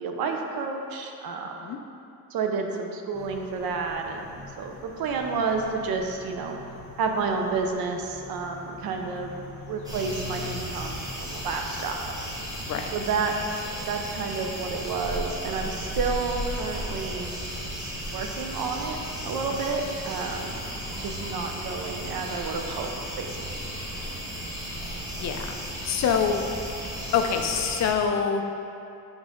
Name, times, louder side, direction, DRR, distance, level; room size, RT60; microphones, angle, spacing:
voice 1, 0.0-1.7 2.3-6.6 7.0-12.1 12.9-13.5 13.9-17.4 18.0-19.0 19.2-20.6 21.0-22.9 23.2-23.7, right 4 dB, 80° right, 3 dB, 0.7 m, -30 dB
sound 1, 3.1-10.4, left 2 dB, 20° left, 1.3 m, -46 dB
sound 2, 9.8-27.9, equal, 10° right, 1.2 m, -35 dB
voice 2, 25.2-25.6 25.8-26.4 27.1-28.4, left 7 dB, 50° left, 4 dB, 0.5 m, -25 dB
7.3 x 3.9 x 3.7 m, 2.7 s
cardioid pair, 150°, 35 cm